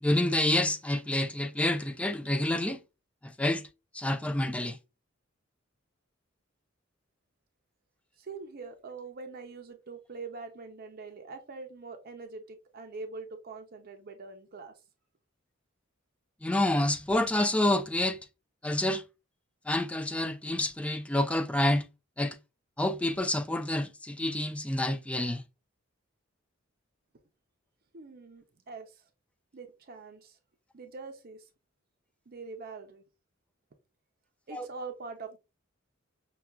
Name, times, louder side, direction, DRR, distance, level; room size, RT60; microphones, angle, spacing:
voice 1, 0.0-2.8 3.2-3.6 3.9-4.8 16.4-18.2 18.6-19.0 19.7-21.8 22.2-22.4 22.8-25.4 34.5-34.7, left 1 dB, 5° left, 0.3 m, -28 dB
voice 2, 8.2-14.7 27.9-29.0 29.5-30.4 30.7-31.4 32.3-33.0 34.5-35.4, right 4 dB, 45° right, 0.6 m, -43 dB
5.7 x 2.3 x 2.3 m
head